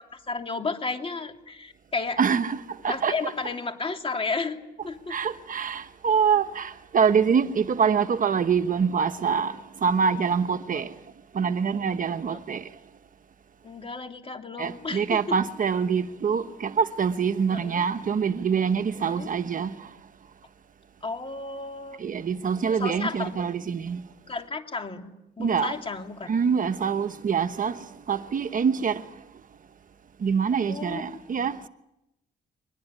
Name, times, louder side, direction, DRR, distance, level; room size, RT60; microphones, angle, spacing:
voice 1, 0.0-2.2 2.9-5.2 13.6-15.4 17.5-17.8 19.0-19.3 21.0-22.0 22.7-23.5 24.3-26.3 30.7-31.2, left 4 dB, 30° left, 3.0 m, -33 dB
voice 2, 2.2-3.1 5.1-10.9 11.3-12.7 14.6-19.9 22.0-24.0 25.4-25.7 26.3-29.0 30.2-31.7, right 6 dB, 45° right, 1.1 m, -25 dB
23.5 x 20.0 x 9.9 m
cardioid pair, 100°, 18 cm